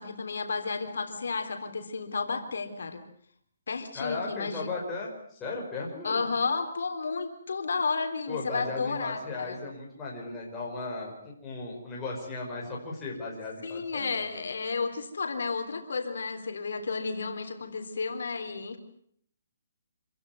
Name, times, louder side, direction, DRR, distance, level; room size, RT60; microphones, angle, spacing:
voice 1, 0.0-3.0 3.7-4.7 6.0-9.6 13.6-18.8, left 4 dB, 75° left, 5 dB, 3.6 m, -32 dB
voice 2, 3.9-6.3 8.3-14.2, left 3 dB, 10° left, -4 dB, 5.3 m, -36 dB
27.0 x 15.5 x 9.4 m, 0.65 s
hypercardioid pair, 175°, 0 cm